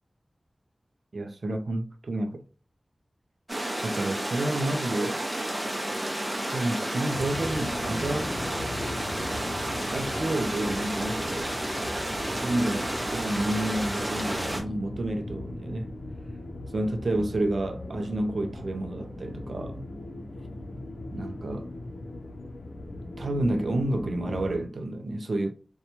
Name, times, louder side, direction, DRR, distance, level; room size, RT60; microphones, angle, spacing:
voice 1, 1.1-2.4 3.8-5.2 6.5-8.3 9.9-11.5 12.4-15.9 16.7-19.9 21.1-21.7 23.2-25.5, right 1 dB, 75° right, 0.3 m, -30 dB
sound 1, 3.5-14.6, right 1 dB, 25° right, 0.6 m, -31 dB
sound 2, 7.1-24.6, left 2 dB, 85° left, 0.5 m, -39 dB
2.8 x 2.2 x 2.7 m
wide cardioid pair, 80°, 0 cm